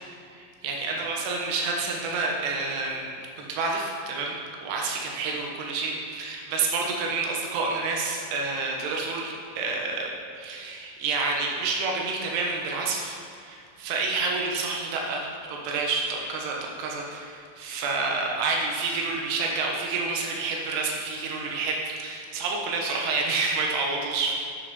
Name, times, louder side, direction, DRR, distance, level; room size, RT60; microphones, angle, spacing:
voice 1, 0.3-3.1 3.4-10.1 10.4-24.4, right 3 dB, 75° right, 0 dB, 3.1 m, -29 dB
8.2 x 6.7 x 5.4 m, 2.4 s
omnidirectional pair, 5.2 m